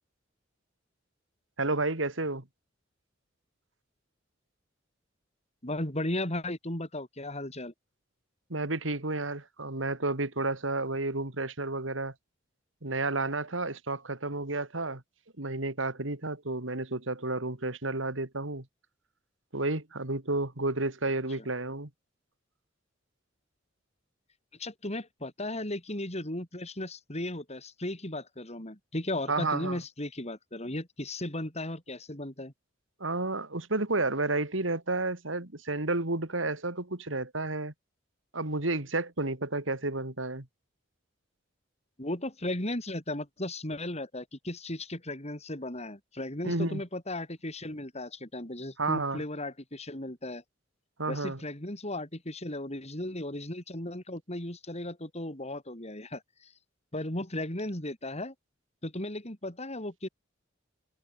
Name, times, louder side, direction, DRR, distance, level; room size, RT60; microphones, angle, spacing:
voice 1, 1.6-2.4 8.5-12.1 12.8-15.0 15.4-18.6 19.5-21.9 29.3-29.8 33.0-37.7 38.3-40.5 46.4-46.8 48.8-49.2 51.0-51.4, right 2 dB, 80° right, 3.0 m, -31 dB
voice 2, 5.6-7.7 24.6-32.5 42.0-50.4 51.1-56.5 56.9-58.3 58.8-60.1, left 1 dB, 35° left, 6.1 m, -36 dB
head